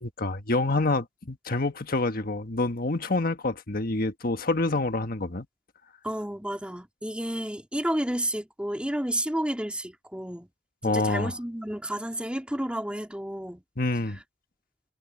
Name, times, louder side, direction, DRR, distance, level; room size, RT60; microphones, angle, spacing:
voice 1, 0.0-5.5 10.8-11.3 13.8-14.2, left 2 dB, 55° left, 1.5 m, -27 dB
voice 2, 6.0-10.5 10.8-13.6 14.1-14.2, right 1 dB, 5° right, 3.7 m, -31 dB
head